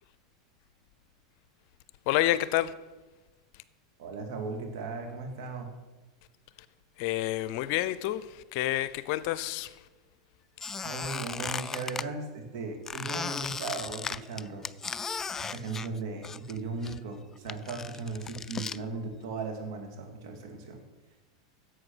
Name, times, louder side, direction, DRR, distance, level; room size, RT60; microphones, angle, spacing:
voice 1, 2.1-2.7 7.0-9.7, left 15 dB, 55° left, 0.6 m, -29 dB
voice 2, 4.0-5.7 10.8-14.7 15.4-20.8, right 4 dB, 65° right, 2.6 m, -37 dB
Squeak, 10.6-12.1 12.9-16.6 16.8-18.8, left 5 dB, 20° left, 0.3 m, -36 dB
11.0 x 7.8 x 6.2 m
hypercardioid pair, 105°, 2 cm